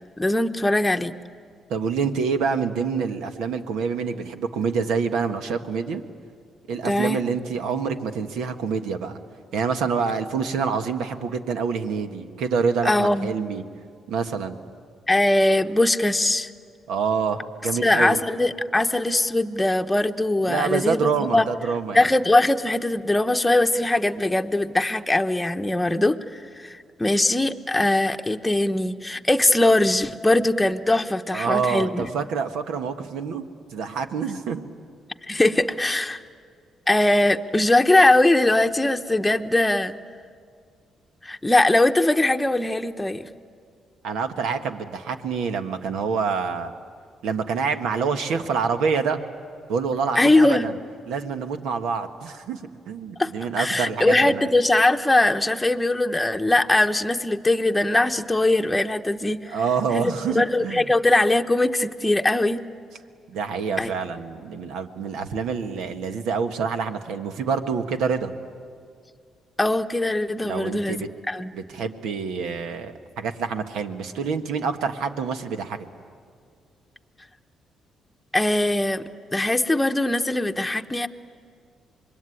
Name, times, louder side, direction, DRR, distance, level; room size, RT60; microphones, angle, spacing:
voice 1, 0.2-1.1 6.8-7.2 12.8-13.3 15.1-16.5 17.7-21.5 21.9-32.1 35.3-36.2 36.9-39.9 41.2-43.3 50.2-50.7 53.2-53.3 53.6-59.6 59.9-62.6 63.8-63.9 69.6-71.5 78.3-79.0 79.3-81.1, left 2 dB, 10° left, 5 dB, 1.0 m, -21 dB
voice 2, 1.7-6.0 6.7-9.2 9.5-13.6 14.1-14.6 16.9-18.2 20.4-22.0 31.3-33.4 33.7-34.7 44.0-46.7 47.2-49.2 49.7-50.8 51.1-52.6 52.9-54.5 59.5-60.9 63.3-68.3 70.4-71.1 71.5-75.8, right 5 dB, 85° right, 7 dB, 1.5 m, -26 dB
26.0 x 22.0 x 9.9 m, 2.1 s
cardioid pair, 90°, 0 cm